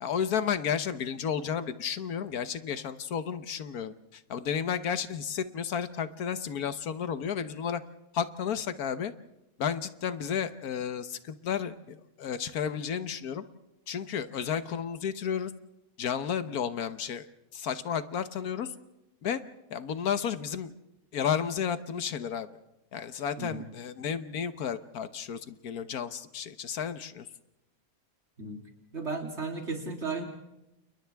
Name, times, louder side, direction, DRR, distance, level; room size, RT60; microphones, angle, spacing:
voice 1, 0.0-7.8 8.1-9.1 9.6-13.4 13.9-15.5 16.0-17.3 17.5-18.7 19.2-19.4 19.7-20.7 21.1-22.5 22.9-27.3, left 7 dB, 85° left, 11 dB, 1.5 m, -32 dB
voice 2, 23.4-23.7 28.4-28.6 28.9-30.2, right 4 dB, 50° right, 1 dB, 3.4 m, -34 dB
30.0 x 29.5 x 3.5 m, 0.91 s
omnidirectional pair, 1.5 m